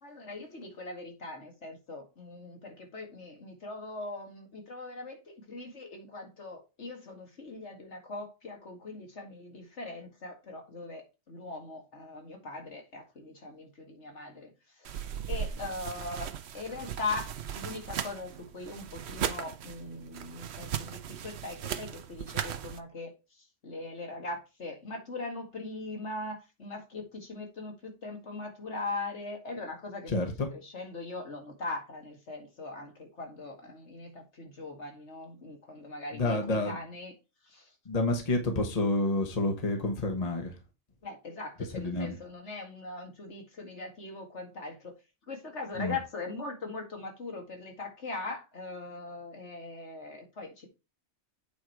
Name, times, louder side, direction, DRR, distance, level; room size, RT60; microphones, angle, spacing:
voice 1, 0.0-14.9 15.3-37.1 37.4-37.8 41.0-44.9 45.3-50.7, left 3 dB, 70° left, 2.3 m, -40 dB
sound 1, 14.8-22.8, right 9 dB, 65° right, 0.9 m, -37 dB
voice 2, 30.1-30.5 36.2-36.7 37.9-40.5 41.7-42.1 45.8-46.0, left 2 dB, 35° left, 1.2 m, -29 dB
8.6 x 4.5 x 4.6 m
omnidirectional pair, 1.3 m